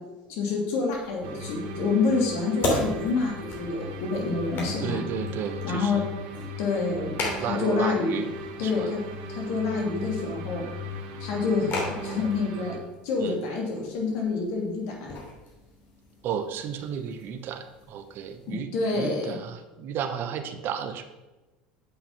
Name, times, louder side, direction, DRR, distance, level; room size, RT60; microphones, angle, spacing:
voice 1, 0.3-5.0 5.6-6.0 6.6-8.2 8.6-9.0 9.3-10.6 11.2-12.7 13.0-15.2 18.5-19.3, left 4 dB, 65° left, -1 dB, 2.8 m, -27 dB
sound 1, 0.9-18.5, left 1 dB, 50° left, 3.0 m, -38 dB
sound 2, 1.2-12.8, equal, 70° right, 1.3 m, -37 dB
voice 2, 4.8-6.1 7.4-8.3 8.6-8.9 13.2-13.4 16.2-21.0, right 8 dB, 55° right, 8 dB, 0.9 m, -33 dB
7.9 x 5.8 x 5.5 m, 1.1 s
hypercardioid pair, 80°, 5 cm